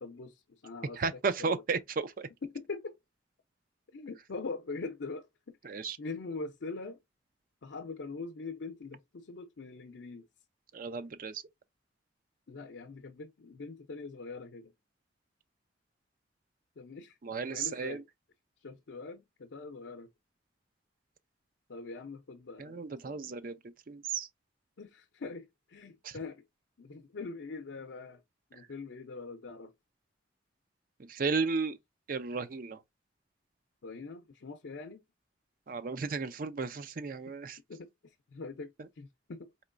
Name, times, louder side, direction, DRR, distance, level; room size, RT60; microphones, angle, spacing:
voice 1, 0.0-1.6 2.4-3.0 3.9-7.0 7.6-10.3 12.5-14.7 16.8-17.2 17.5-18.0 18.6-20.1 21.7-23.4 24.8-26.5 26.8-28.2 28.5-29.7 33.8-35.0 37.7-39.5, left 3 dB, 85° left, 0.5 m, -43 dB
voice 2, 1.0-2.3 5.6-6.0 10.7-11.4 17.2-18.0 22.6-23.6 23.9-24.3 26.0-26.1 31.0-31.8 32.1-32.8 35.7-37.6, right 4 dB, 50° right, 0.4 m, -34 dB
4.3 x 3.0 x 2.5 m
head